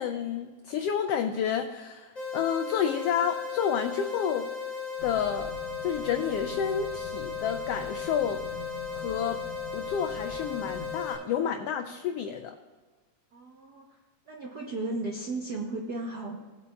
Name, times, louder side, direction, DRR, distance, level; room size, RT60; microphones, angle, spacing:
voice 1, 0.0-4.5 5.0-5.5 5.8-8.4 8.9-9.4 9.7-12.6, left 8 dB, 85° left, 5 dB, 1.3 m, -30 dB
sound 1, 2.2-11.2, left 6 dB, 25° left, 3.3 m, -36 dB
sound 2, 5.0-11.1, left 4 dB, 45° left, 3.7 m, -45 dB
Wind instrument woodwind instrument, 5.0-11.7, right 7 dB, 50° right, 1.2 m, -49 dB
voice 2, 13.3-14.0 14.3-16.4, right 2 dB, 90° right, -1 dB, 0.8 m, -35 dB
19.0 x 8.2 x 2.3 m, 1.4 s
omnidirectional pair, 3.3 m